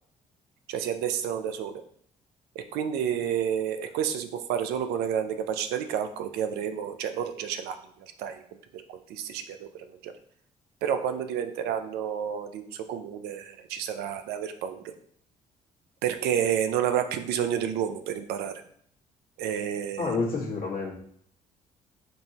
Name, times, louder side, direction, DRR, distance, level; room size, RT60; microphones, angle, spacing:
voice 1, 0.7-1.8 2.7-8.4 8.7-10.1 10.8-14.8 16.0-18.5 19.4-20.2, right 9 dB, 75° right, 8 dB, 0.5 m, -30 dB
voice 2, 20.0-21.0, left 4 dB, 60° left, -3 dB, 1.6 m, -29 dB
5.3 x 2.7 x 2.9 m, 0.62 s
hypercardioid pair, 55°, 17 cm